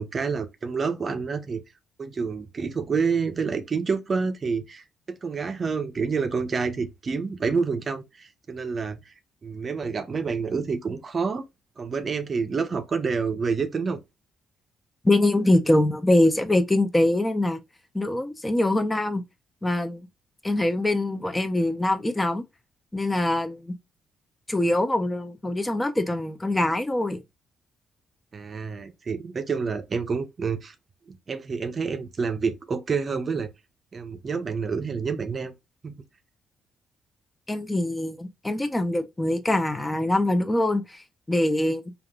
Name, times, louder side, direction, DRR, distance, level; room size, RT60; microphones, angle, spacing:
voice 1, 0.0-1.6 2.0-4.8 5.2-9.1 9.4-11.4 11.8-14.0 28.3-30.7 31.1-33.5 33.9-35.5 35.8-35.9, right 5 dB, 40° right, 0.5 m, -28 dB
voice 2, 15.0-17.6 17.9-19.2 19.6-20.1 20.4-22.4 22.9-23.7 24.5-27.2 37.5-42.0, left 1 dB, 15° left, 0.5 m, -23 dB
3.4 x 2.4 x 2.2 m
cardioid pair, 90°, 0 cm